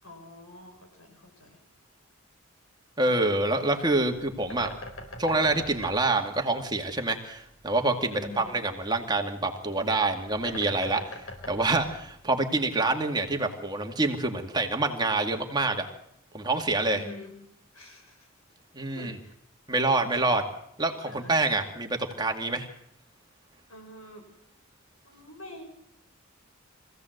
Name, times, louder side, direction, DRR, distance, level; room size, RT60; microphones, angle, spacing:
voice 1, 0.0-1.6 8.1-8.6 16.9-17.3 17.7-18.3 18.9-19.3 21.0-21.5 23.7-24.3 25.0-25.6, left 1 dB, 90° left, 3 dB, 7.0 m, -46 dB
voice 2, 3.0-4.7 5.2-15.9 16.3-17.0 18.7-19.2 19.7-20.4 20.8-22.7, right 2 dB, 20° right, 3 dB, 2.1 m, -26 dB
Bird, 4.4-12.8, left 1 dB, 70° left, 4.8 m, -45 dB
24.5 x 16.5 x 7.9 m, 0.75 s
head